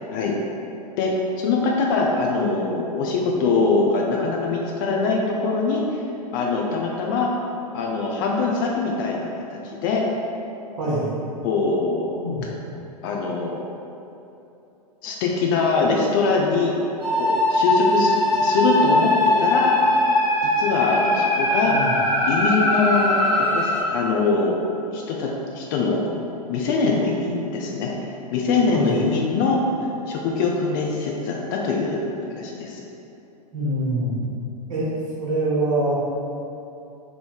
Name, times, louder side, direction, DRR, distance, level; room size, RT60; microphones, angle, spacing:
voice 1, 1.0-6.0 6.3-7.3 7.7-10.1 11.4-12.2 13.0-13.6 15.0-16.8 17.2-20.0 20.6-21.9 22.3-24.6 24.9-26.1 26.5-27.9 28.3-29.6 30.1-32.8, left 3 dB, 30° left, -1 dB, 0.4 m, -23 dB
voice 2, 10.8-11.1 12.1-12.4 21.7-22.0 28.7-29.0 33.5-34.2 34.7-34.9 35.2-36.0, right 1 dB, 50° right, -6 dB, 1.2 m, -24 dB
sound 1, 17.0-23.8, left 2 dB, 80° left, 1.2 m, -20 dB
3.2 x 2.6 x 4.5 m, 2.9 s
figure-of-eight pair, 100°, 21 cm